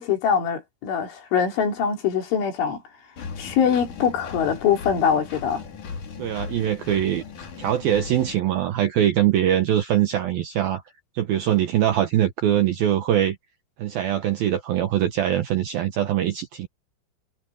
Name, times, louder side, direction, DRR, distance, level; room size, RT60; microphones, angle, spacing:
voice 1, 0.0-2.8 3.4-5.6, left 7 dB, 70° left, 5.9 m, -23 dB
Engine, 3.2-8.4, left 5 dB, 45° left, 4.2 m, -37 dB
voice 2, 6.2-7.2 7.6-10.8 11.2-13.4 13.8-16.7, right 11 dB, 70° right, 2.3 m, -22 dB
omnidirectional pair, 5.7 m